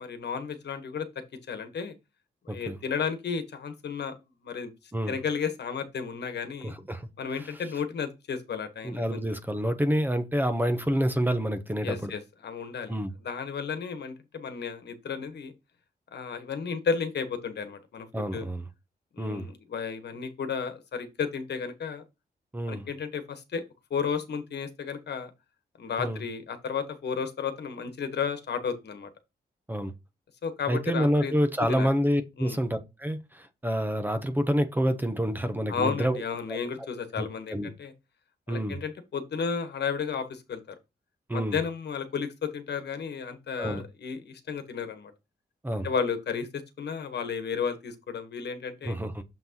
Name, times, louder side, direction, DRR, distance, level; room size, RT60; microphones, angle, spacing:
voice 1, 0.0-1.9 2.4-4.1 4.4-4.7 5.1-6.7 7.2-9.2 11.8-12.9 13.2-15.5 16.1-18.4 19.1-22.0 22.7-23.6 23.9-25.3 25.8-29.1 30.4-31.3 31.7-31.9 32.4-32.6 35.7-37.9 38.5-40.7 41.3-45.1 45.8-49.0, left 6 dB, 80° left, 1.2 m, -33 dB
voice 2, 6.6-7.1 7.4-7.5 8.8-12.1 12.9-13.1 18.1-18.6 19.2-19.5 22.5-22.9 26.0-26.2 29.7-29.9 30.7-36.2 36.5-36.6 37.2-37.3 37.5-37.7 38.5-38.8 41.3-41.6 43.6-43.8 45.6-45.9 48.8-49.2, equal, 10° right, 0.8 m, -28 dB
7.2 x 5.9 x 2.9 m
wide cardioid pair, 175°, 17 cm